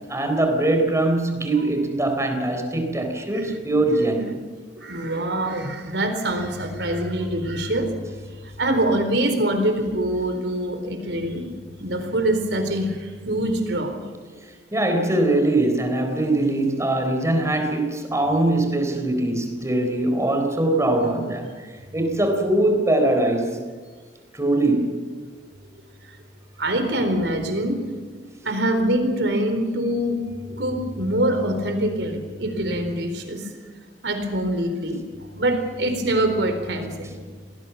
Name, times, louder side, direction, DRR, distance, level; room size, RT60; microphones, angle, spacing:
voice 1, 0.1-4.3 14.7-23.6 24.3-24.9, right 1 dB, 15° right, 5 dB, 3.9 m, -22 dB
voice 2, 4.8-7.9 8.4-11.5 11.8-14.0 26.6-27.8 28.4-30.2 30.5-33.5 34.0-35.0 35.3-37.3, right 1 dB, 75° right, 6 dB, 4.1 m, -24 dB
27.0 x 19.0 x 7.1 m, 1.5 s
head